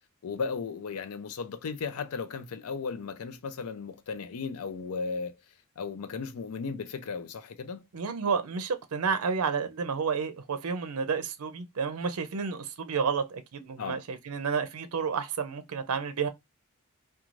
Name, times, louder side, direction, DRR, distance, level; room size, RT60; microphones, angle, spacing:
voice 1, 0.2-5.4 5.8-7.8 13.8-14.0, left 5 dB, 70° left, 0.5 m, -35 dB
voice 2, 7.9-16.3, right 5 dB, 70° right, 0.5 m, -30 dB
2.5 x 2.3 x 3.0 m
head